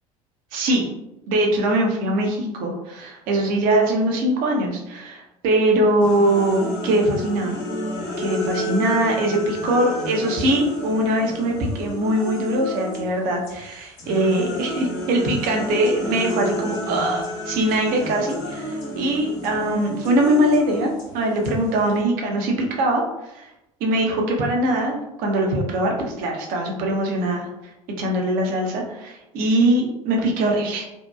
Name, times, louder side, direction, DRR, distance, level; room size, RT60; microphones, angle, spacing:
voice 1, 0.5-0.9 1.3-7.6 8.2-23.0 23.3-23.5 23.8-27.5 28.0-30.8, right 1 dB, 55° right, 1 dB, 0.6 m, -22 dB
sound 1, 6.0-13.1 13.4-22.0, left 1 dB, 50° left, 1.0 m, -31 dB
2.7 x 2.2 x 2.2 m, 0.91 s
figure-of-eight pair, 65°, 18 cm